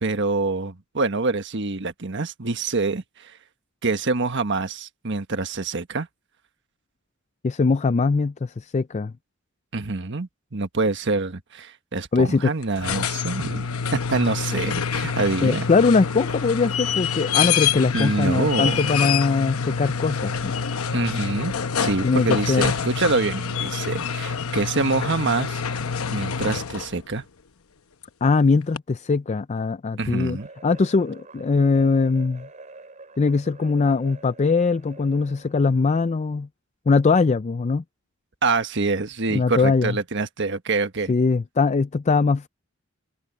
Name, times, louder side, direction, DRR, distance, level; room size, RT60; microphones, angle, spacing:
voice 1, 0.0-3.3 3.8-6.1 9.7-15.7 17.9-18.8 20.9-25.8 26.1-27.2 30.0-30.5 38.4-41.1, right 3 dB, 60° right, 1.4 m, -26 dB
voice 2, 7.4-9.1 12.1-12.5 15.4-20.6 22.0-22.8 28.2-32.5 33.2-36.5 36.9-37.8 39.3-40.0 41.1-42.5, left 4 dB, 30° left, 0.4 m, -21 dB
sound 1, 12.6-27.0 28.8-28.9, left 6 dB, 85° left, 0.9 m, -26 dB
sound 2, 30.3-35.7, right 3 dB, 35° right, 3.8 m, -45 dB
head